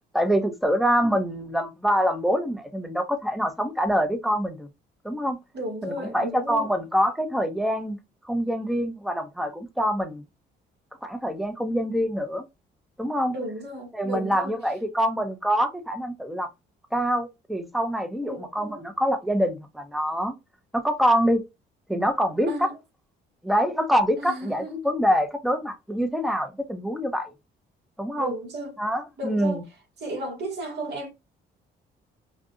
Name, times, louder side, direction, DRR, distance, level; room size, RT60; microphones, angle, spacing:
voice 1, 0.1-4.7 5.0-5.4 5.8-8.0 8.2-10.2 11.0-12.4 13.0-13.4 13.9-16.5 16.9-20.3 20.7-21.4 21.9-22.7 23.4-27.3 28.0-28.3 28.8-29.6, equal, ahead, 0.9 m, -25 dB
voice 2, 5.5-6.7 13.3-14.5 18.2-18.8 22.5-22.8 24.2-24.7 28.2-28.8 29.2-29.6 30.0-31.1, right 1 dB, 55° right, 2.1 m, -34 dB
5.3 x 2.5 x 2.6 m
supercardioid pair, 70°, 21 cm